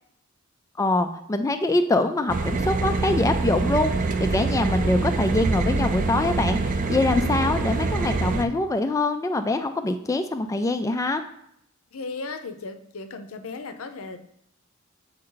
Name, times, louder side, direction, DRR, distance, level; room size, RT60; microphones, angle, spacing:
voice 1, 0.8-11.2, left 2 dB, 15° left, 7 dB, 0.3 m, -24 dB
sound 1, 2.3-8.4, right 3 dB, 40° right, 0.5 m, -25 dB
voice 2, 11.9-14.2, left 3 dB, 75° left, 8 dB, 0.7 m, -36 dB
7.6 x 4.3 x 3.9 m, 0.72 s
head